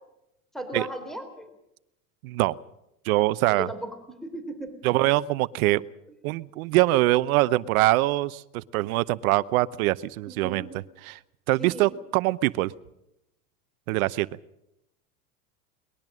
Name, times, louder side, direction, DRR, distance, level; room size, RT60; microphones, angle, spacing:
voice 1, 0.5-1.5 3.5-3.9 4.2-4.8 10.3-10.7 11.6-11.9, right 1 dB, ahead, 8 dB, 3.8 m, -36 dB
voice 2, 2.2-2.6 3.0-3.7 4.8-5.8 6.2-10.7 11.0-11.2 11.5-12.7 13.9-14.3, right 18 dB, 65° right, 17 dB, 0.9 m, -23 dB
22.5 x 21.0 x 6.3 m, 0.86 s
hypercardioid pair, 100°, 46 cm